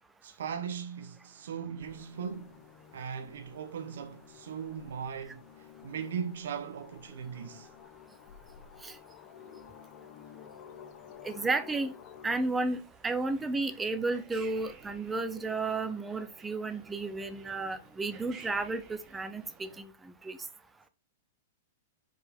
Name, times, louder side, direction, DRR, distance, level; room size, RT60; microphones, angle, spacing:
voice 1, 0.2-2.6 2.9-5.4 5.8-7.7, right 7 dB, 80° right, 1.0 m, -38 dB
sound 1, 1.8-12.5, left 8 dB, 35° left, 0.9 m, -52 dB
voice 2, 11.2-11.9 12.2-20.4, right 3 dB, 10° right, 0.6 m, -33 dB
sound 2, 12.4-19.8, right 5 dB, 25° right, 1.5 m, -54 dB
4.9 x 4.5 x 5.2 m
supercardioid pair, 155°, 0 cm